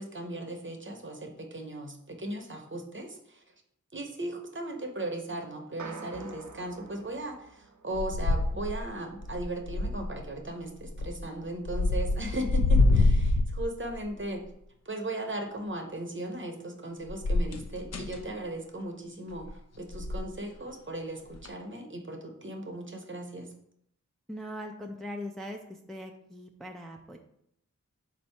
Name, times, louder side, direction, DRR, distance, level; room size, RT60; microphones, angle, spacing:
voice 1, 0.0-3.4 3.9-14.4 14.9-19.5 19.8-23.5, right 1 dB, 40° right, 3 dB, 0.7 m, -37 dB
sound 1, 5.8-8.3, right 4 dB, 70° right, 0.5 m, -46 dB
sound 2, 7.9-8.9 9.2-10.2 10.8-11.2 11.6-14.1 17.1-18.2 19.3-19.5 19.9-20.3 21.3-21.5, left 2 dB, 60° left, 0.5 m, -26 dB
voice 2, 24.3-27.2, left 1 dB, ahead, 2 dB, 0.4 m, -40 dB
4.0 x 2.7 x 4.4 m, 0.71 s
wide cardioid pair, 55°, 30 cm